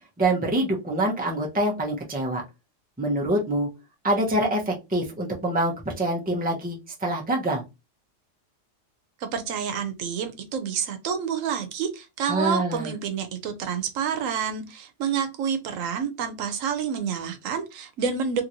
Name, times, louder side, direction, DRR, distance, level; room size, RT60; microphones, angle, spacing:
voice 1, 0.2-2.4 3.0-3.7 4.0-7.6 12.3-12.9, right 1 dB, 10° right, 0.6 m, -25 dB
voice 2, 9.2-18.4, right 7 dB, 90° right, 1.0 m, -28 dB
2.9 x 2.9 x 2.5 m
omnidirectional pair, 1.3 m